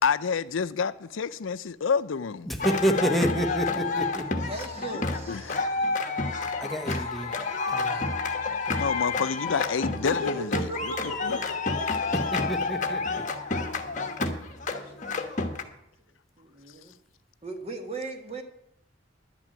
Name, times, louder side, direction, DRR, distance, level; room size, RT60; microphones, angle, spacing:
voice 1, 0.0-2.5 5.3-5.6 8.7-11.4, left 6 dB, 80° left, 0.5 m, -28 dB
voice 2, 2.5-4.3 6.6-7.3 7.7-7.9 12.3-13.3, equal, ahead, 0.9 m, -28 dB
sound 1, 2.6-15.6, left 3 dB, 40° left, 1.2 m, -29 dB
voice 3, 3.4-5.6 6.8-7.0 7.9-8.2 10.0-11.7 12.0-12.5 14.8-14.9 16.4-17.0 17.4-18.4, right 1 dB, 30° right, 1.5 m, -38 dB
11.5 x 6.1 x 8.7 m
head